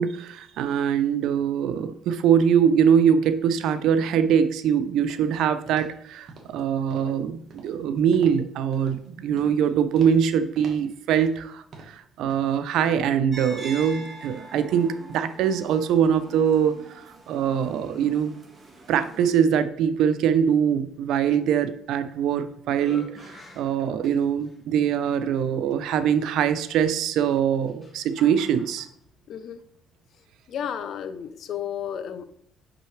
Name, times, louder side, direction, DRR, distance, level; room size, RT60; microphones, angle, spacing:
voice 1, 0.0-18.3 18.9-28.9, right 8 dB, 80° right, 10 dB, 0.5 m, -23 dB
sound 1, 5.1-5.3 5.7-6.0 6.3-6.6 6.9-7.2 7.5-7.8 8.1-8.4 8.7-9.1 9.3-9.6 9.9-10.3 10.5-11.5 11.7-12.0 12.3-12.6 12.9-13.0, right 3 dB, 55° right, 1.5 m, -47 dB
sound 2, 13.3-19.3, right 2 dB, 25° right, 1.7 m, -44 dB
sound 3, 21.9-22.3 22.7-24.6 25.3-25.4 27.2-28.9, left 2 dB, 25° left, 1.6 m, -46 dB
voice 2, 29.3-29.6 30.5-32.2, left 9 dB, 65° left, 11 dB, 0.5 m, -32 dB
6.1 x 5.6 x 3.2 m, 0.69 s
cardioid pair, 95°, 0 cm